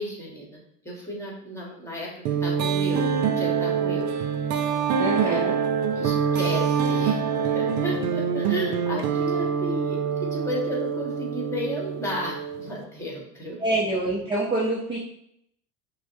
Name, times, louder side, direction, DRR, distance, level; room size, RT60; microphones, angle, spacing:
voice 1, 0.0-4.2 5.2-5.6 5.9-7.2 7.5-13.6, equal, 5° left, -3 dB, 1.3 m, -33 dB
sound 1, 2.3-12.8, right 6 dB, 80° right, 0.6 m, -25 dB
voice 2, 5.0-5.6 13.6-15.0, right 2 dB, 10° right, -3 dB, 0.4 m, -26 dB
5.6 x 2.1 x 2.6 m, 0.73 s
hypercardioid pair, 85°, 49 cm